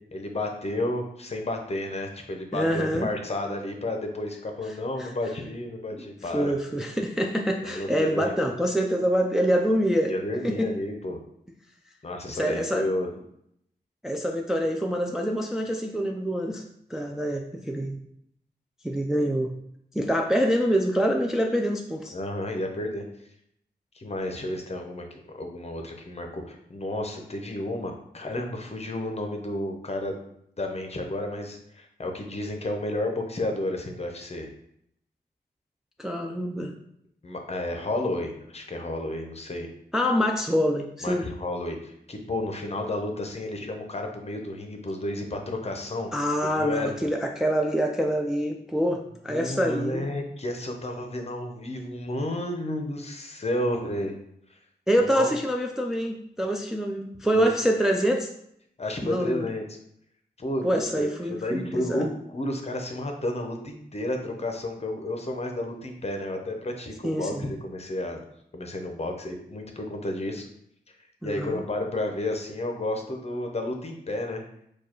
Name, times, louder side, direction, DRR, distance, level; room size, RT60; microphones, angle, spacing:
voice 1, 0.1-6.5 7.6-8.3 10.1-11.2 12.0-13.1 22.1-23.0 23.9-30.2 30.6-34.5 37.2-39.7 41.0-46.1 46.4-46.9 49.3-54.2 54.5-54.6 55.0-55.3 57.3-57.5 58.8-59.6 60.4-60.7 60.9-68.2 68.5-70.5 71.0-74.4, left 1 dB, 35° left, 3 dB, 0.8 m, -31 dB
voice 2, 2.5-3.1 5.0-5.1 5.9-6.1 6.3-10.1 10.4-10.7 12.3-12.9 14.0-16.6 16.9-18.0 18.8-19.5 19.9-22.1 36.0-36.7 39.9-41.3 46.1-50.1 54.9-58.3 59.0-59.5 60.6-62.1 67.0-67.4 71.2-71.6, equal, 5° right, 2 dB, 0.4 m, -26 dB
4.6 x 2.4 x 4.4 m, 0.73 s
wide cardioid pair, 95°, 18 cm